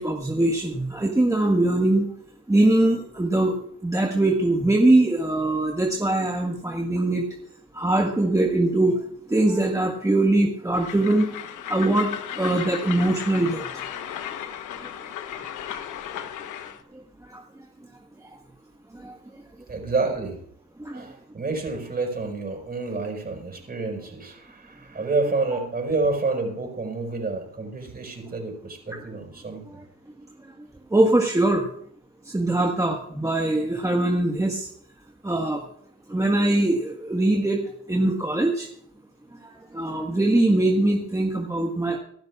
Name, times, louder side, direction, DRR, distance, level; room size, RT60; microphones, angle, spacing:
voice 1, 0.0-2.1 2.5-7.2 7.7-11.3 11.6-13.7 16.9-17.4 18.9-19.1 20.8-21.0 30.9-31.7 32.2-34.7 35.2-35.6 36.1-38.7 39.5-42.0, right 2 dB, 10° right, 0 dB, 1.5 m, -22 dB
Train, 10.7-16.8, left 9 dB, 80° left, 1.1 m, -35 dB
voice 2, 19.7-20.4 20.9-29.6, right 3 dB, 30° right, 2 dB, 5.3 m, -28 dB
24.5 x 12.0 x 2.5 m, 0.65 s
cardioid pair, 90°, 30 cm